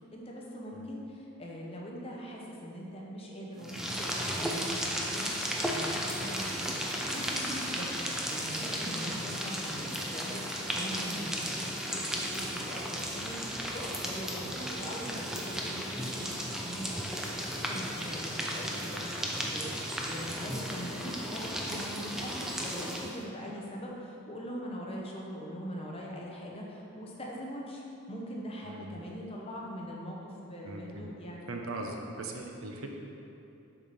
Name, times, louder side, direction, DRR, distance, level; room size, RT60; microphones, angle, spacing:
voice 1, 0.1-13.4 13.7-31.4, equal, 25° left, -2 dB, 0.8 m, -42 dB
sound 1, 3.6-23.2, equal, ahead, 0.4 m, -35 dB
voice 2, 28.6-29.0 30.6-31.1 31.5-32.9, right 2 dB, 75° right, 1 dB, 0.8 m, -40 dB
7.1 x 5.0 x 4.1 m, 2.9 s
head